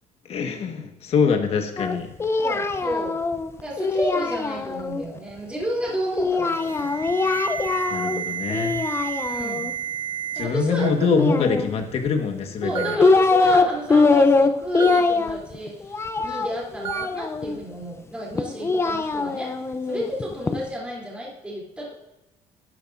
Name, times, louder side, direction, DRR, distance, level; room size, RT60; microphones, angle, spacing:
voice 1, 0.3-2.1 7.9-8.8 10.3-13.0, left 5 dB, 50° left, 5 dB, 1.4 m, -24 dB
Singing, 1.8-5.0 6.2-8.2 8.5-9.7 11.1-12.1 12.7-13.6 13.9-17.6 18.3-20.6, left 3 dB, 20° left, 0.6 m, -22 dB
voice 2, 2.4-3.2 3.6-6.9 9.2-9.7 10.4-10.9 12.6-19.5 19.8-21.9, equal, 10° right, -4 dB, 3.0 m, -31 dB
Alarm, 6.5-10.5 10.8-11.2 12.0-12.1 12.8-13.0 14.8-15.0 16.8-17.1, right 9 dB, 40° right, 1.1 m, -31 dB
12.0 x 10.0 x 2.5 m, 0.94 s
cardioid pair, 130°, 13 cm